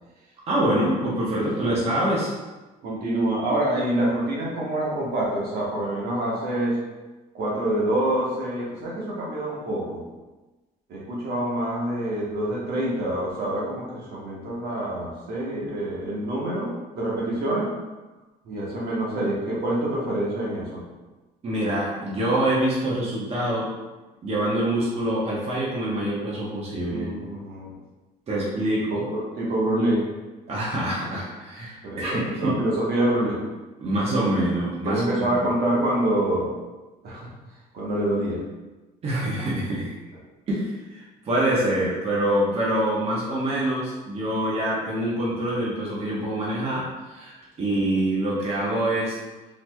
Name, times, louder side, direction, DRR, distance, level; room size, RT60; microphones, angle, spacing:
voice 1, 0.5-2.3 21.4-23.7 24.2-27.1 28.3-29.1 30.5-32.6 33.8-35.5 39.0-39.9 40.5-49.2, right 1 dB, 40° right, -6 dB, 0.9 m, -25 dB
voice 2, 1.3-1.8 2.8-6.8 7.3-10.1 10.9-17.7 18.4-20.8 26.9-27.7 28.9-30.0 31.8-33.4 34.8-36.5 37.0-37.3 37.7-38.4, right 1 dB, 65° right, -5 dB, 1.1 m, -26 dB
3.9 x 3.0 x 2.2 m, 1.1 s
cardioid pair, 110°, 17 cm